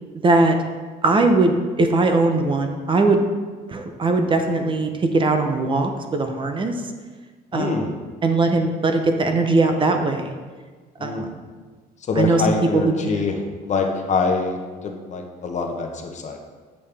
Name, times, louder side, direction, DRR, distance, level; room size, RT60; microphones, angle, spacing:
voice 1, 0.2-0.6 1.0-3.2 3.7-6.7 7.5-7.9 8.2-10.3 11.0-11.3 12.2-13.3, right 3 dB, 30° right, 5 dB, 0.7 m, -20 dB
voice 2, 7.5-7.9 11.0-11.3 12.1-13.3 13.7-16.4, left 4 dB, 45° left, 4 dB, 1.0 m, -24 dB
8.5 x 5.5 x 3.4 m, 1.4 s
cardioid pair, 110°, 17 cm